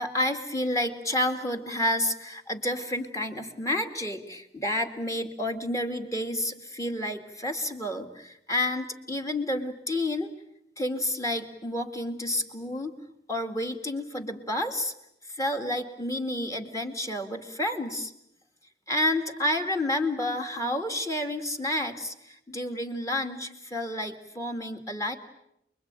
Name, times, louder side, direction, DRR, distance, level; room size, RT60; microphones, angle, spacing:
voice 1, 0.0-10.3 10.8-12.9 13.3-14.9 15.3-18.1 18.9-25.2, left 1 dB, 20° left, 4 dB, 2.3 m, -30 dB
29.0 x 22.0 x 9.0 m, 0.81 s
head